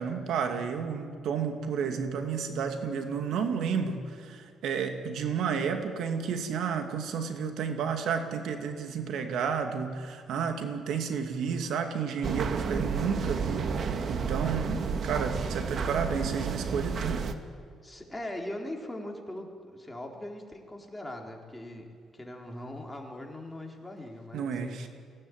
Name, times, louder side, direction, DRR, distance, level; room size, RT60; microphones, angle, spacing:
voice 1, 0.0-17.3 24.3-24.9, right 6 dB, 80° right, 5 dB, 2.5 m, -31 dB
sound 1, 12.2-17.3, right 5 dB, 55° right, 1.7 m, -31 dB
voice 2, 17.8-21.9 22.1-24.9, left 1 dB, 10° left, 1 dB, 4.0 m, -40 dB
22.5 x 17.5 x 9.5 m, 2.3 s
cardioid pair, 90°, 0 cm